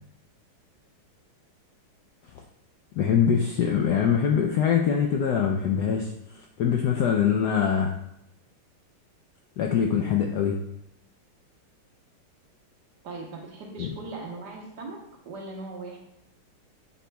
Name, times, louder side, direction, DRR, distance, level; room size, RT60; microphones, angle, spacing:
voice 1, 2.9-7.9 9.6-10.6 13.8-13.9, left 7 dB, 80° left, 2 dB, 0.9 m, -23 dB
voice 2, 13.0-15.0 15.2-16.0, right 3 dB, 60° right, 1 dB, 1.4 m, -39 dB
7.2 x 7.1 x 2.3 m, 0.82 s
omnidirectional pair, 2.3 m